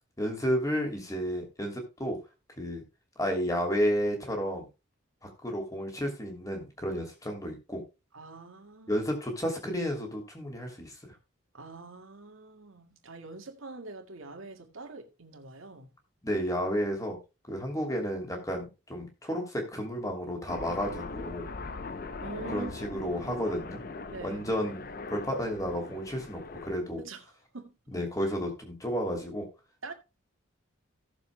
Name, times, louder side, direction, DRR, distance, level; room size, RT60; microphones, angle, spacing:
voice 1, 0.2-2.2 2.6-2.8 3.2-4.7 5.2-7.8 8.9-10.9 16.2-17.2 17.5-21.5 22.5-23.8 24.2-24.8 25.1-27.0 27.9-29.5, equal, 15° left, 2.8 m, -32 dB
voice 2, 8.1-8.9 11.5-15.9 22.2-23.5 24.1-24.4 27.0-27.2 27.5-27.7 28.2-28.3 29.8-29.9, right 3 dB, 80° right, 2.0 m, -44 dB
Aircraft, 20.5-26.7, left 3 dB, 45° left, 0.6 m, -41 dB
17.0 x 7.1 x 2.2 m
head